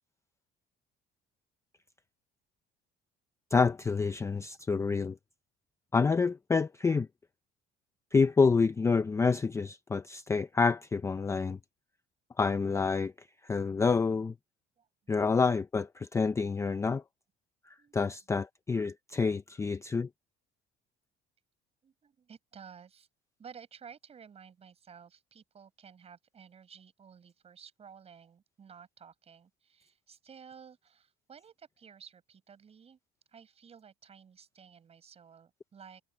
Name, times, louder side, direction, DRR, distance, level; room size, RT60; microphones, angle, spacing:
voice 1, 3.5-5.2 5.9-7.1 8.1-11.6 12.4-13.1 13.4-14.3 15.1-17.0 17.7-20.1, left 4 dB, 15° left, 0.4 m, -28 dB
voice 2, 21.8-23.1 23.4-33.0 33.3-36.0, right 7 dB, 30° right, 6.7 m, -53 dB
cardioid pair, 160°, 21 cm